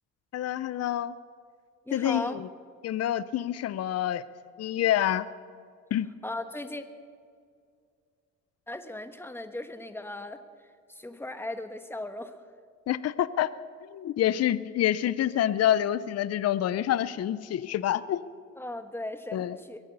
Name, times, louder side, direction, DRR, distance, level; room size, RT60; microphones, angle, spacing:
voice 1, 0.3-1.1 1.9-2.5 2.8-4.2 4.6-5.3 5.9-6.1 12.9-13.5 13.9-18.2 19.3-19.6, left 11 dB, 55° left, 16 dB, 0.6 m, -27 dB
voice 2, 1.9-2.4 6.2-6.8 8.7-10.4 10.9-12.3 18.6-19.8, left 1 dB, 10° left, 9 dB, 1.3 m, -37 dB
22.5 x 9.2 x 6.8 m, 2.2 s
cardioid pair, 90°, 30 cm